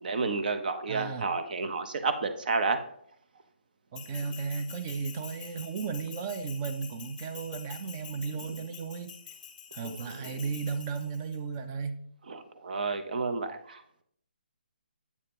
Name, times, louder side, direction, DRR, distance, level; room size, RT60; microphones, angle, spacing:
voice 1, 0.0-2.8 9.8-10.0 10.2-10.4 12.3-14.0, right 4 dB, 55° right, 8 dB, 0.7 m, -31 dB
voice 2, 0.9-1.3 3.9-9.2 9.7-12.0, right 5 dB, 20° right, 9 dB, 0.4 m, -35 dB
Bell, 3.9-11.4, left 8 dB, 20° left, 0.9 m, -47 dB
8.2 x 2.8 x 5.2 m, 0.68 s
hypercardioid pair, 165°, 6 cm